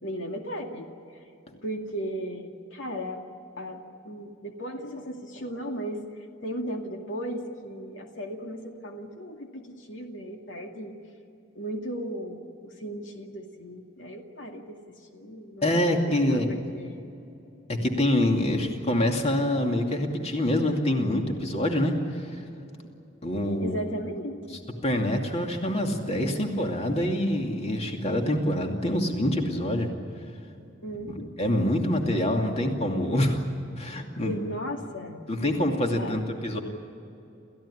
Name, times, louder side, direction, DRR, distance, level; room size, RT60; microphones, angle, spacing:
voice 1, 0.0-0.9 1.6-3.2 3.6-6.0 6.4-11.0 11.6-14.8 15.1-17.1 23.6-24.6 30.8-31.4 34.2-35.2 35.9-36.3, equal, 80° left, 3 dB, 2.3 m, -36 dB
voice 2, 15.6-16.5 17.7-22.4 23.2-23.8 24.8-29.9 31.1-33.4 33.8-34.3 35.3-36.6, left 1 dB, 35° left, 2 dB, 2.6 m, -26 dB
29.0 x 15.5 x 9.9 m, 2.8 s
head